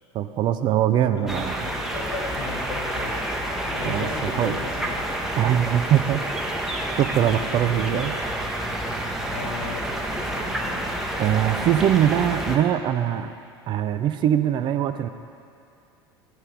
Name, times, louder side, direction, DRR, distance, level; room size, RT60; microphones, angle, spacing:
voice 1, 0.1-1.7 3.8-4.6 5.4-6.2 6.9-8.1 11.2-13.3 13.7-15.1, right 10 dB, 35° right, 9 dB, 0.5 m, -22 dB
voice 2, 1.2-3.1 3.7-5.0 7.9-8.0 9.3-10.9, left 3 dB, 70° left, 1 dB, 1.3 m, -36 dB
sound 1, 1.3-12.6, right 1 dB, 5° right, 1.0 m, -29 dB
14.5 x 5.6 x 4.7 m, 2.4 s
figure-of-eight pair, 75°, 14 cm